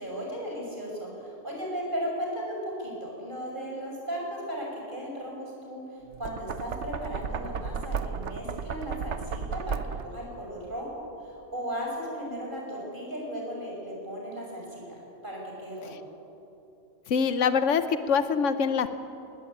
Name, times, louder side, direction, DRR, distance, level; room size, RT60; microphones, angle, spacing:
voice 1, 0.0-9.8 10.0-14.8 15.2-16.0, equal, 45° right, -2 dB, 6.6 m, -36 dB
Knock, 6.1-10.2, right 6 dB, 70° right, 1.2 m, -34 dB
voice 2, 17.1-18.9, left 6 dB, 85° left, 11 dB, 1.2 m, -24 dB
20.5 x 20.0 x 8.8 m, 2.8 s
omnidirectional pair, 1.2 m